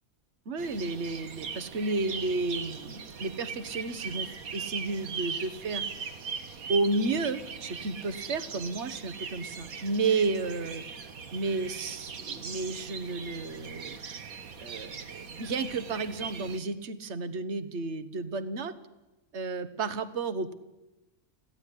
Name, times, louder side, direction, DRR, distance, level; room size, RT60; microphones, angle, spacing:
voice 1, 0.4-5.8 6.7-10.8 11.3-14.0 14.6-18.7 19.3-20.5, right 3 dB, 50° right, 13 dB, 1.6 m, -32 dB
sound 1, 0.6-16.6, right 6 dB, 75° right, 1.9 m, -40 dB
22.0 x 16.0 x 10.0 m, 1.0 s
omnidirectional pair, 1.5 m